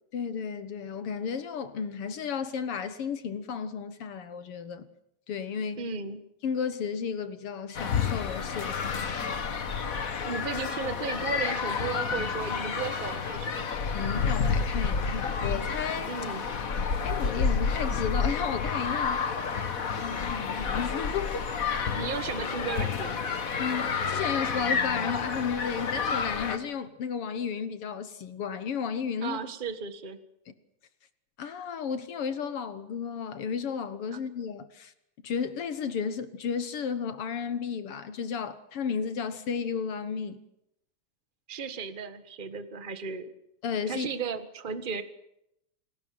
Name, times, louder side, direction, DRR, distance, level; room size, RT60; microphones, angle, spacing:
voice 1, 0.1-4.9 5.3-5.9 6.4-9.1 13.9-16.1 17.0-19.2 20.0-21.5 23.6-29.4 30.5-30.6 31.4-34.9 35.2-40.4 43.6-44.1, left 6 dB, 60° left, 1.9 m, -33 dB
voice 2, 5.8-6.2 10.2-13.6 16.1-16.4 21.9-23.4 29.2-30.2 34.1-34.2 41.5-43.3 43.9-45.0, right 5 dB, 30° right, 0.9 m, -35 dB
sound 1, 7.7-26.6, left 5 dB, 40° left, 1.3 m, -30 dB
29.0 x 19.5 x 7.8 m
omnidirectional pair, 3.4 m